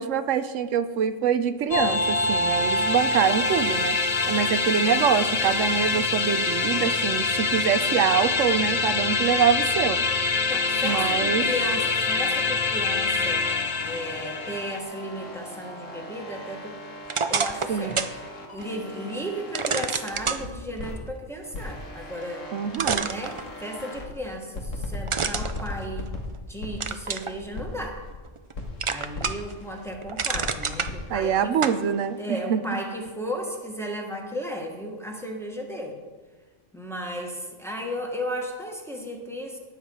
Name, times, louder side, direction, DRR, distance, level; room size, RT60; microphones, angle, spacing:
voice 1, 0.0-4.0 4.3-10.0 10.8-11.4 17.7-18.0 22.5-23.1 31.1-32.6, right 8 dB, 80° right, 11 dB, 1.0 m, -25 dB
sound 1, 1.7-14.8, left 3 dB, 40° left, 0.7 m, -25 dB
voice 2, 10.5-13.5 13.8-16.8 17.3-18.0 18.5-22.5 23.0-26.1 26.5-28.0 28.9-31.6 32.2-36.0 36.7-39.6, equal, ahead, 0 dB, 1.5 m, -34 dB
sound 2, 13.2-21.0 21.5-24.2 24.5-28.2 28.5-30.0 30.3-32.4, left 1 dB, 80° left, 2.0 m, -39 dB
sound 3, 17.1-18.2 18.6-18.7 19.5-20.4 22.2-22.3 22.7-23.8 25.1-26.4 26.8-27.3 27.8-28.5 28.8-29.5 29.9-30.9 31.6-31.8, right 5 dB, 45° right, 0.4 m, -28 dB
18.5 x 7.5 x 4.7 m, 1.4 s
omnidirectional pair, 1.3 m